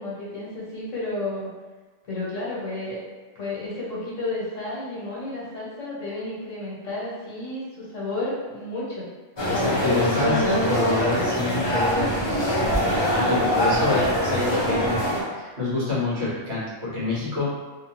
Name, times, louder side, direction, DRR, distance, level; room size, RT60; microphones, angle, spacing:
voice 1, 0.0-1.5 2.1-3.0 3.4-9.1, left 2 dB, 75° left, -6 dB, 1.2 m, -32 dB
sound 1, 9.4-15.2, equal, 25° left, 0.6 m, -23 dB
voice 2, 9.5-17.5, left 2 dB, 60° right, -9 dB, 1.3 m, -27 dB
2.9 x 2.3 x 2.8 m, 1.3 s
omnidirectional pair, 1.3 m